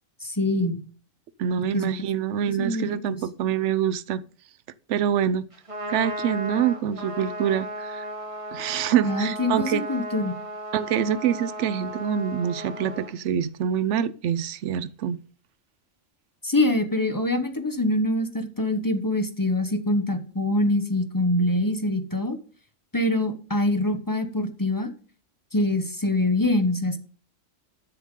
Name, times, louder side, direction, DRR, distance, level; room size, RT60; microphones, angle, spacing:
voice 1, 0.2-0.8 1.6-1.9 2.5-3.2 9.0-10.4 16.4-22.4 22.9-24.9 25.5-27.0, left 1 dB, 15° left, 1.0 m, -24 dB
voice 2, 1.4-4.2 4.9-5.4 5.9-8.0 8.5-9.8 10.7-15.2, right 9 dB, 70° right, 1.0 m, -25 dB
Trumpet, 5.5-13.1, equal, 25° right, 1.9 m, -35 dB
13.0 x 7.2 x 3.8 m
omnidirectional pair, 1.4 m